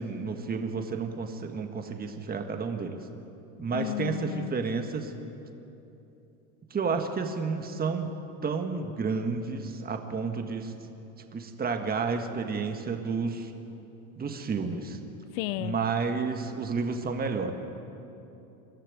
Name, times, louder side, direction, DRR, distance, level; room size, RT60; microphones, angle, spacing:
voice 1, 0.0-3.1 3.6-5.1 6.7-8.2 8.4-10.7 11.3-13.5 14.2-15.0 15.6-17.5, right 5 dB, 20° right, 5 dB, 1.6 m, -31 dB
voice 2, 3.7-4.5 15.4-15.8, left 16 dB, 65° left, 14 dB, 0.8 m, -32 dB
22.5 x 13.0 x 9.4 m, 2.9 s
supercardioid pair, 110°, 44 cm